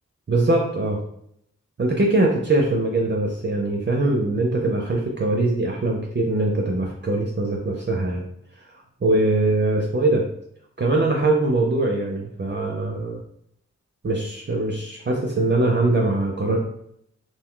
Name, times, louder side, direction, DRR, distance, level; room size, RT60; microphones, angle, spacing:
voice 1, 0.3-1.0 1.8-8.2 8.7-8.8 9.0-10.2 10.8-13.2 14.0-16.6, right 2 dB, 40° right, 0 dB, 0.5 m, -22 dB
2.6 x 2.2 x 3.7 m, 0.71 s
wide cardioid pair, 50°, 29 cm